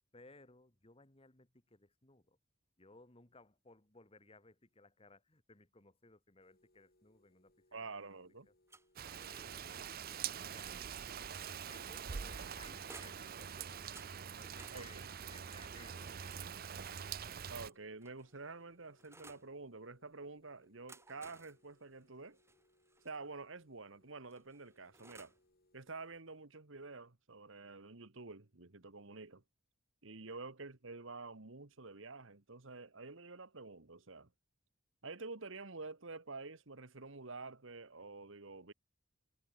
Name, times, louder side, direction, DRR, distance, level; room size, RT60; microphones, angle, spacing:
voice 1, 0.1-2.4 2.8-7.5 8.0-8.2 9.1-11.1 11.7-14.1 14.4-15.1 15.3-17.1, left 3 dB, 30° left, 2.0 m, -62 dB
sound 1, 6.4-26.2, left 1 dB, 50° left, 5.4 m, -75 dB
voice 2, 7.7-8.5 14.7-15.0 17.5-22.4 23.0-25.3 25.7-29.4 30.0-34.3 35.0-38.7, right 3 dB, 70° right, 1.7 m, -49 dB
sound 2, 8.7-10.2 11.6-13.4 13.9-16.9 17.7-19.5 20.6-23.2 24.3-25.5, right 3 dB, 15° right, 6.2 m, -61 dB
Rain, 9.0-17.7, right 8 dB, 45° right, 0.6 m, -45 dB
head